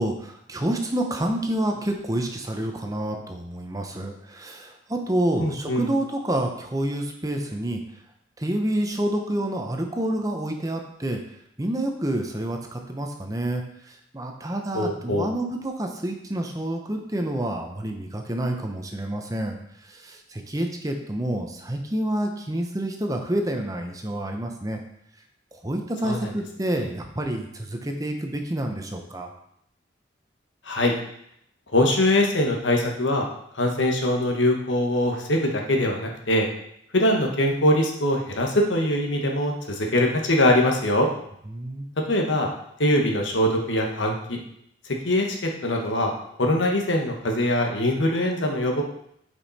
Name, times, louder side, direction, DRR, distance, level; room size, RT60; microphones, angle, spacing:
voice 1, 0.0-7.8 8.4-11.2 11.6-19.6 19.8-24.8 25.5-29.3 41.5-41.9, right 1 dB, 20° right, 3 dB, 0.8 m, -28 dB
voice 2, 5.4-5.9 14.7-15.3 26.0-26.3 26.8-26.9 30.6-30.9 31.7-33.2 33.5-36.5 36.9-41.1 42.1-42.5 42.8-44.4 45.0-46.1 46.4-48.8, left 1 dB, 85° left, 1 dB, 1.4 m, -22 dB
8.9 x 5.4 x 4.2 m, 0.74 s
head